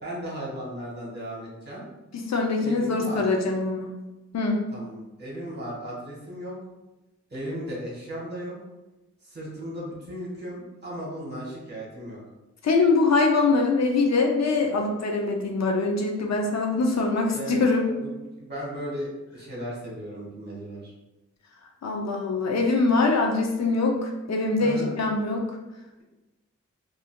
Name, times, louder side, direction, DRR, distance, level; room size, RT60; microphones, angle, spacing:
voice 1, 0.0-1.8 2.6-3.3 4.7-6.6 7.3-8.6 9.2-12.2 16.8-17.0 17.3-20.9 24.6-24.9, equal, 35° right, -5 dB, 1.3 m, -36 dB
voice 2, 2.2-3.9 4.3-4.6 12.6-17.9 21.8-25.4, left 3 dB, 65° left, 1 dB, 0.5 m, -23 dB
3.5 x 2.5 x 2.2 m, 1.1 s
wide cardioid pair, 100°, 30 cm